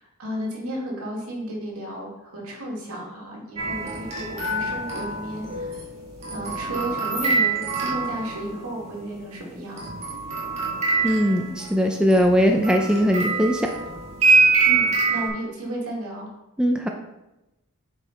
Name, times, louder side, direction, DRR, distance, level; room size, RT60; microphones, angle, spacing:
voice 1, 0.0-5.8 6.3-9.9 14.6-16.3, right 1 dB, 75° right, -3 dB, 2.4 m, -33 dB
sound 1, 3.6-8.6 9.8-15.3, right 4 dB, 30° right, 1.8 m, -24 dB
voice 2, 11.0-13.7 16.6-16.9, equal, 5° right, 2 dB, 0.5 m, -20 dB
8.0 x 4.7 x 4.2 m, 0.95 s
head